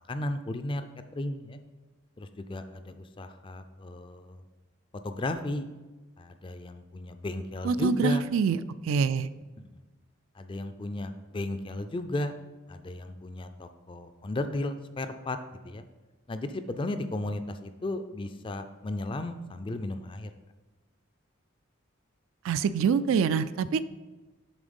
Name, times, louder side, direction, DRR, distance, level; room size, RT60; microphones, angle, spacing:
voice 1, 0.1-0.8 1.1-1.6 2.2-4.4 5.0-5.7 6.2-8.2 9.6-9.8 10.4-12.3 12.7-15.4 15.6-15.8 16.3-20.3, left 2 dB, 25° left, 9 dB, 0.3 m, -34 dB
voice 2, 7.6-8.6 8.9-9.3 22.4-23.8, right 6 dB, 75° right, 14 dB, 0.3 m, -25 dB
7.3 x 3.9 x 5.2 m, 1.2 s
head